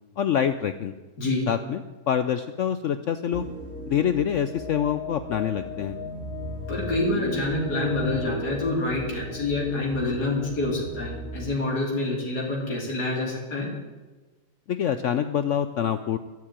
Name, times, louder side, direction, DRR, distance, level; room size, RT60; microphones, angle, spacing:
voice 1, 0.2-0.9 1.5-3.4 3.9-6.0 14.7-16.2, left 9 dB, 65° left, 10 dB, 0.8 m, -26 dB
sound 1, 3.3-11.5, left 1 dB, 10° left, 3.0 m, -36 dB
voice 2, 6.7-13.7, left 2 dB, 80° left, -2 dB, 3.5 m, -27 dB
13.5 x 7.6 x 8.8 m, 1.2 s
omnidirectional pair, 1.7 m